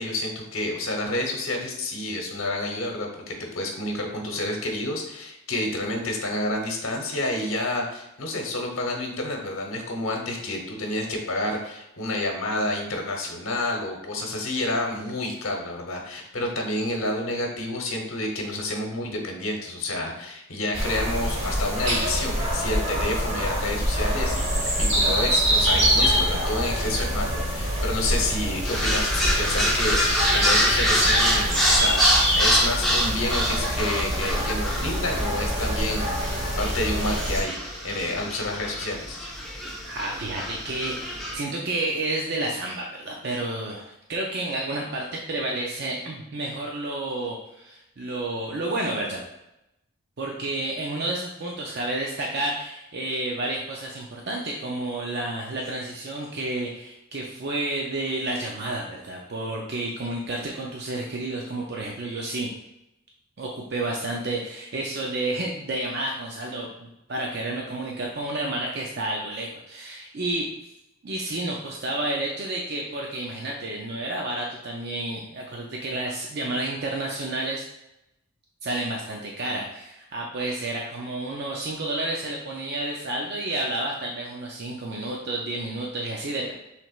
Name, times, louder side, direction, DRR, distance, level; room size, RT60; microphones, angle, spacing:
voice 1, 0.0-37.6 37.8-39.3, left 1 dB, 70° left, 1 dB, 1.0 m, -29 dB
sound 1, 20.7-37.4, equal, 30° right, 1.1 m, -25 dB
sound 2, 28.6-41.4, equal, ahead, 0.7 m, -26 dB
voice 2, 39.8-49.2 50.2-62.5 63.4-70.5 71.0-77.6 78.6-86.5, right 2 dB, 50° right, -1 dB, 0.5 m, -30 dB
6.0 x 3.3 x 2.4 m, 0.88 s
head